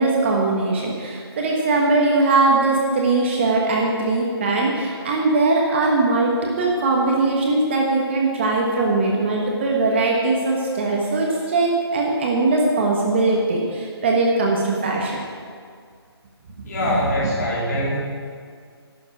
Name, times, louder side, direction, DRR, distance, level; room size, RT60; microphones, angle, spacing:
voice 1, 0.0-6.3 6.6-15.2 16.8-17.3, right 3 dB, 25° right, -1 dB, 1.3 m, -20 dB
voice 2, 16.6-18.0, left 1 dB, 40° left, -5 dB, 4.0 m, -23 dB
11.5 x 7.3 x 8.8 m, 2.1 s
hypercardioid pair, 165°, 14 cm